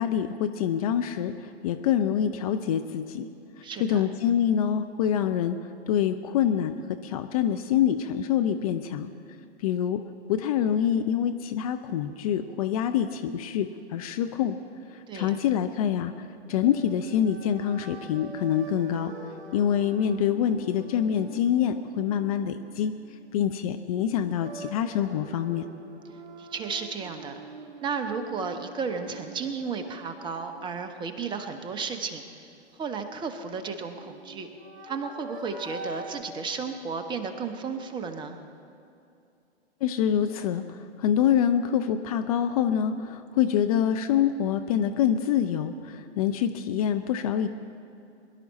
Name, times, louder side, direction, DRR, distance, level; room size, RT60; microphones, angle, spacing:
voice 1, 0.0-3.3 3.6-5.6 5.9-9.1 9.6-10.0 10.3-14.6 14.9-19.1 19.5-23.0 23.3-25.7 39.8-47.5, left 9 dB, 35° left, 9 dB, 0.5 m, -26 dB
voice 2, 3.6-4.0 15.1-15.4 26.4-27.4 27.8-32.2 32.8-34.5 34.8-38.4, right 5 dB, 15° right, 7 dB, 0.7 m, -33 dB
sound 1, 16.5-23.6 24.0-31.9 33.6-36.2, right 2 dB, 45° right, 3.9 m, -45 dB
22.0 x 11.5 x 4.2 m, 2.6 s
figure-of-eight pair, 110°, 34 cm